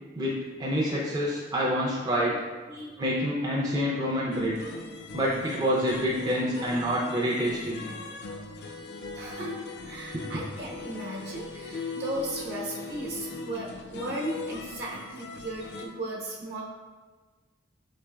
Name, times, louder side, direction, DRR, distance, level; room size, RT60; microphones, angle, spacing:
voice 1, 0.6-2.3 3.0-4.6 5.1-7.8, equal, 20° right, -5 dB, 0.4 m, -27 dB
voice 2, 2.7-3.0 8.3-8.5 8.8-16.6, right 1 dB, 60° right, -4 dB, 0.9 m, -36 dB
sound 1, 4.3-15.9, left 3 dB, 60° left, 0.3 m, -40 dB
4.3 x 3.2 x 2.2 m, 1.3 s
head